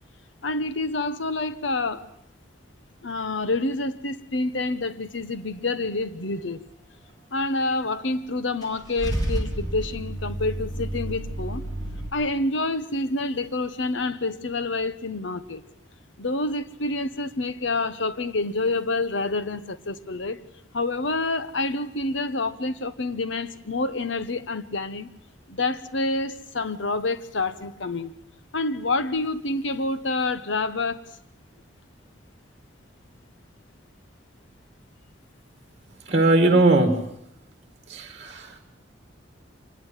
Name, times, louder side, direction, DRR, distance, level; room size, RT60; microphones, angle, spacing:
voice 1, 0.4-2.1 3.0-6.6 7.3-11.6 12.1-15.6 16.2-20.4 20.7-25.1 25.5-28.1 28.5-31.0, left 2 dB, 70° left, 1.1 m, -28 dB
Car / Engine starting / Idling, 8.6-12.1, right 1 dB, 20° left, 3.9 m, -30 dB
voice 2, 36.1-37.0 37.9-38.6, right 2 dB, 35° right, 2.2 m, -19 dB
25.0 x 20.5 x 7.4 m
head